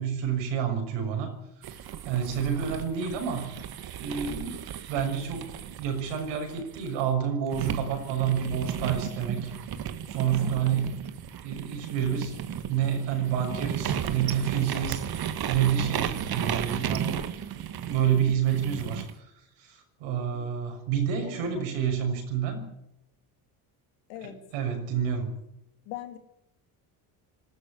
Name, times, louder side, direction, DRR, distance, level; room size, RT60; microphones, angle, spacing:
voice 1, 0.0-1.3 1.7-1.8 2.0-3.5 4.0-4.6 4.9-5.5 5.8-9.5 10.1-11.0 11.4-12.3 12.7-17.2 17.5-19.3 19.6-22.6 24.2-25.3, right 8 dB, 85° right, 4 dB, 6.5 m, -29 dB
sound 1, 1.6-7.0 7.5-19.1, right 9 dB, 55° right, 1.8 m, -34 dB
voice 2, 10.3-10.9 15.7-15.9 20.3-20.5 21.2-21.7 24.1-24.4 25.9-26.2, left 12 dB, 80° left, 7 dB, 3.1 m, -42 dB
19.5 x 13.5 x 10.0 m, 0.82 s
supercardioid pair, 85°, 45 cm